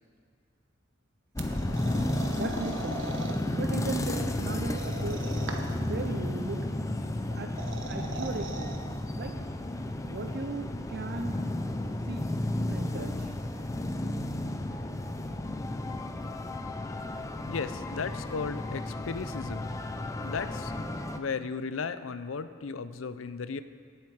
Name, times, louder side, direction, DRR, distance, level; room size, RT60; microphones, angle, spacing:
sound 1, 1.4-21.2, left 1 dB, 15° left, 0.5 m, -33 dB
sound 2, 1.4-3.4 4.7-5.9 7.3-8.8, right 3 dB, 70° right, 1.2 m, -40 dB
voice 1, 2.3-3.1 3.6-5.4 5.9-6.7 7.4-7.5 7.9-8.8 9.2-9.3 10.1-11.4 12.1-12.3 12.7-13.3, right 3 dB, 55° right, 5 dB, 0.6 m, -37 dB
voice 2, 17.5-19.7 20.2-20.7 21.2-23.6, left 5 dB, 85° left, 12 dB, 0.5 m, -35 dB
18.0 x 8.0 x 4.8 m, 2.2 s
head